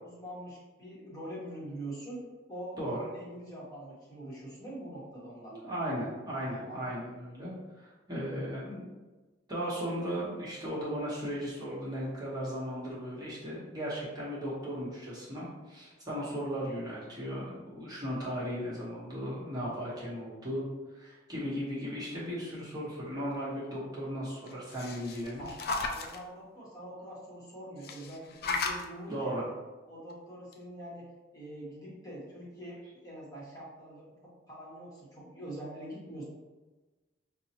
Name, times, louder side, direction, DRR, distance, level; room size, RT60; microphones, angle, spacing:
voice 1, 0.0-5.5 6.5-6.9 25.4-29.5 29.9-36.2, right 1 dB, 20° left, -7 dB, 0.9 m, -44 dB
voice 2, 2.8-3.1 5.5-7.5 7.8-8.9 9.5-20.6 21.0-25.5 29.1-29.4, equal, 20° right, -8 dB, 0.9 m, -36 dB
sound 1, 24.5-26.2 27.8-28.8 30.1-30.2 30.5-30.6, left 4 dB, 55° left, 0.3 m, -35 dB
5.3 x 2.0 x 2.8 m, 1.2 s
head